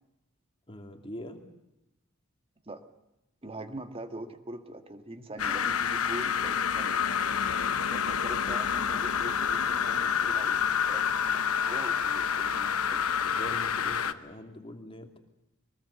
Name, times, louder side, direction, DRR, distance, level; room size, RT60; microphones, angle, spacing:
voice 1, 0.7-1.4 13.2-15.2, equal, 25° left, 4 dB, 2.8 m, -43 dB
voice 2, 3.4-7.0 7.9-10.6 10.9-13.0, right 1 dB, 25° right, 8 dB, 1.8 m, -42 dB
sound 1, 5.4-14.1, left 7 dB, 90° left, 1.0 m, -28 dB
23.0 x 20.0 x 8.2 m, 0.93 s
head